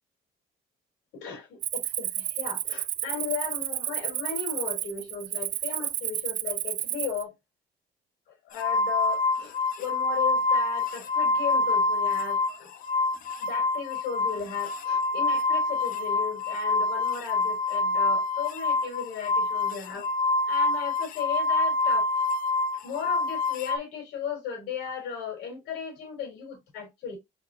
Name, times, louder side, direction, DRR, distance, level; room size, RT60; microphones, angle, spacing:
voice 1, 1.1-7.3 8.3-12.7 13.4-20.1 20.5-22.1 22.8-27.2, left 7 dB, 90° left, 3.4 m, -36 dB
Cricket, 1.6-7.2, right 12 dB, 50° right, 0.4 m, -31 dB
sound 1, 8.6-12.6 12.8-23.8, left 3 dB, 55° left, 0.7 m, -26 dB
4.5 x 4.3 x 2.6 m
cardioid pair, 110°, 17 cm